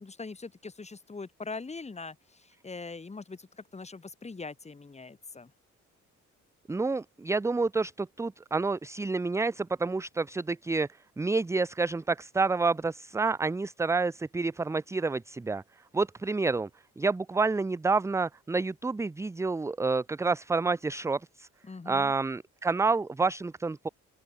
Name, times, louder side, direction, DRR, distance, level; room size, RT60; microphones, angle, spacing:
voice 1, 0.0-5.5 21.6-22.1, left 4 dB, 20° left, 1.9 m, -42 dB
voice 2, 6.7-10.9 11.2-15.6 15.9-16.7 17.0-21.5 21.9-23.9, right 3 dB, 10° right, 0.4 m, -29 dB
open air
cardioid pair, 90°, 30 cm